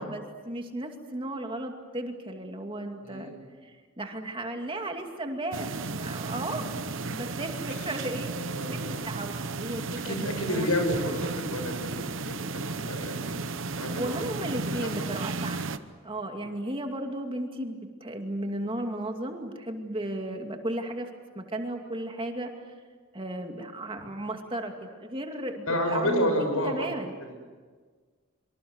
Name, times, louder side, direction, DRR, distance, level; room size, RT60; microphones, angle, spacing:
voice 1, 0.0-3.3 3.6-6.7 7.1-8.3 8.7-10.7 14.0-15.6 16.0-21.1 21.3-22.5 23.1-26.3 26.6-27.1, right 1 dB, 25° right, 4 dB, 2.5 m, -35 dB
voice 2, 3.0-3.4 7.7-7.9 8.4-9.0 10.0-13.4 13.8-14.9 25.7-26.9, equal, 85° left, 5 dB, 6.8 m, -30 dB
sound 1, 5.5-15.8, right 3 dB, 60° right, 1.0 m, -34 dB
26.0 x 25.0 x 8.0 m, 1.5 s
head